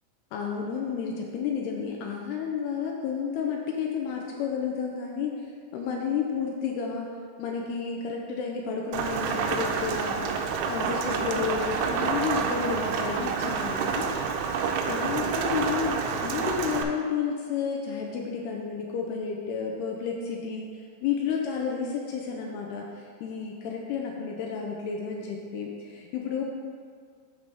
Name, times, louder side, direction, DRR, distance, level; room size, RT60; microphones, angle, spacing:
voice 1, 0.3-5.3 5.7-7.1 7.4-10.4 10.7-14.2 14.9-20.7 21.0-26.4, left 6 dB, 90° left, 0 dB, 2.3 m, -31 dB
Rain, 8.9-16.8, right 6 dB, 90° right, 3.0 m, -28 dB
8.5 x 5.5 x 3.4 m, 2.1 s
omnidirectional pair, 5.4 m